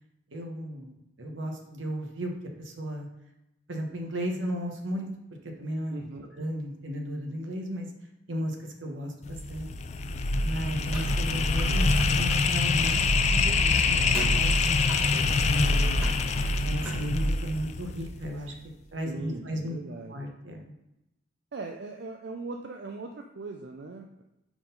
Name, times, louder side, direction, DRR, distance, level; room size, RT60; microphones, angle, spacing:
voice 1, 0.3-0.9 1.2-2.3 2.6-3.1 3.7-5.1 5.6-6.1 6.3-7.9 8.3-8.6 8.8-9.7 10.4-13.0 13.3-16.0 16.6-18.5 18.9-19.8 20.1-20.6, equal, 80° right, 2 dB, 1.1 m, -34 dB
voice 2, 5.9-6.2 14.0-14.3 19.0-20.2 21.5-24.2, right 3 dB, 60° right, 3 dB, 0.5 m, -40 dB
sound 1, 9.2-18.4, left 3 dB, 35° left, 0.3 m, -25 dB
Car, 10.9-11.7 11.9-17.0, right 1 dB, 10° right, 1.7 m, -42 dB
4.9 x 3.8 x 5.4 m, 0.89 s
head